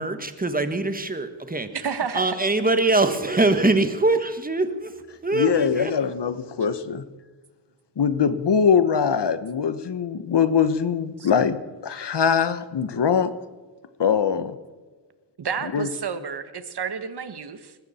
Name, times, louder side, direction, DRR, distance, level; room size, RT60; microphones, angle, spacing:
voice 1, 0.0-1.7 2.1-4.9 5.2-5.9, right 2 dB, 20° right, 9 dB, 1.5 m, -23 dB
voice 2, 1.7-2.4 11.2-11.3 15.4-17.8, right 6 dB, 55° right, 11 dB, 1.3 m, -30 dB
voice 3, 5.3-7.0 8.0-13.3 14.0-14.5 15.7-15.9, left 7 dB, 60° left, 13 dB, 1.2 m, -22 dB
20.0 x 15.5 x 4.3 m, 1.4 s
wide cardioid pair, 85°, 47 cm